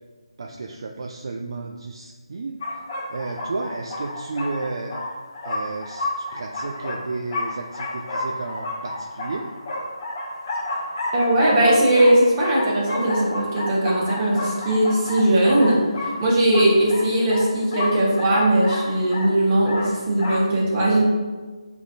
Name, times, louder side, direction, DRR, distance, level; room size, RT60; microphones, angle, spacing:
voice 1, 0.4-2.6 3.1-5.0 5.4-9.5, right 3 dB, 50° right, 1 dB, 0.3 m, -32 dB
sound 1, 2.6-20.5, left 1 dB, 40° left, 1.0 m, -31 dB
voice 2, 11.1-21.0, right 1 dB, 25° right, -6 dB, 1.2 m, -19 dB
6.3 x 2.7 x 2.5 m, 1.4 s
figure-of-eight pair, 155°, 3 cm